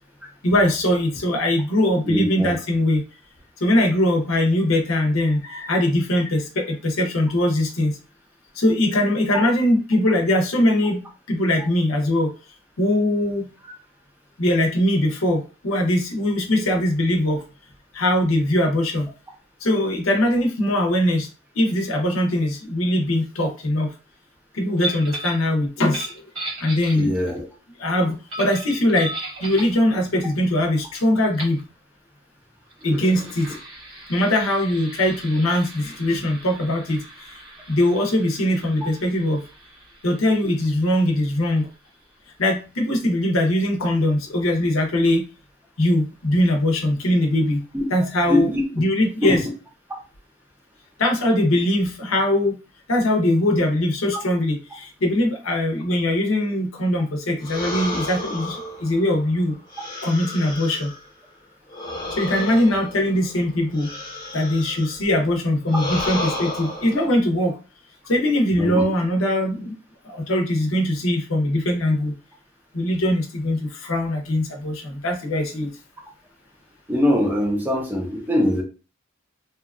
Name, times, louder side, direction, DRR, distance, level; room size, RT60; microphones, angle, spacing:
voice 1, 0.4-3.0 3.6-8.0 8.6-11.0 11.3-12.3 12.8-13.5 14.4-17.4 17.9-19.1 19.6-21.3 21.6-23.9 24.5-26.1 26.6-27.1 27.8-29.1 29.4-31.6 32.8-33.5 34.1-37.4 37.7-39.4 40.0-41.7 42.4-45.2 45.8-47.6 47.9-48.5 48.8-49.4 51.0-52.6 52.9-59.5 60.0-60.9 62.1-63.9 64.3-67.5 68.1-69.8 70.0-72.1 72.7-75.7, left 1 dB, 80° left, 2 dB, 0.7 m, -21 dB
voice 2, 2.1-2.5 26.9-27.5 32.8-33.1 47.7-47.9 48.3-48.7 49.2-49.4 68.6-68.8 76.9-78.6, left 1 dB, 10° right, 1 dB, 0.5 m, -22 dB
sound 1, 24.8-25.4 25.8-27.4 28.3-29.8 30.9-31.0 31.3-31.6 32.7-41.9, right 1 dB, 75° right, 1.2 m, -37 dB
sound 2, 57.4-61.1 61.7-65.0 65.6-67.1, left 2 dB, 20° left, 1.0 m, -32 dB
2.8 x 2.3 x 2.3 m, 0.34 s
head